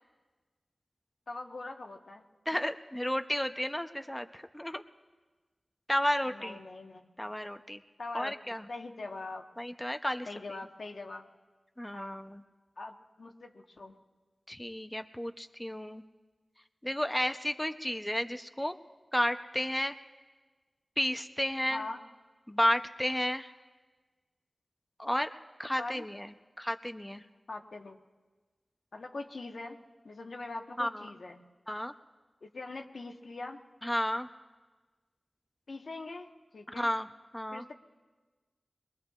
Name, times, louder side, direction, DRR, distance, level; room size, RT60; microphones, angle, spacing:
voice 1, 1.3-2.2 6.2-7.0 8.0-8.3 8.7-9.5 10.3-11.3 11.9-12.2 12.8-14.0 21.7-22.0 25.8-26.0 27.5-28.0 28.9-29.8 30.0-31.4 32.4-33.6 35.7-36.9 37.5-37.7, left 2 dB, 75° left, 3 dB, 1.1 m, -42 dB
voice 2, 2.5-4.8 5.9-6.6 7.2-7.8 8.1-8.7 9.6-10.3 11.8-12.4 14.5-16.0 16.8-18.7 19.1-19.9 21.0-21.8 22.5-23.5 25.0-25.3 25.6-27.2 30.8-31.1 31.7-31.9 33.8-34.3 36.7-37.1 37.3-37.7, equal, 10° left, 8 dB, 0.6 m, -32 dB
22.5 x 22.0 x 2.4 m, 1.3 s
wide cardioid pair, 60°, 0 cm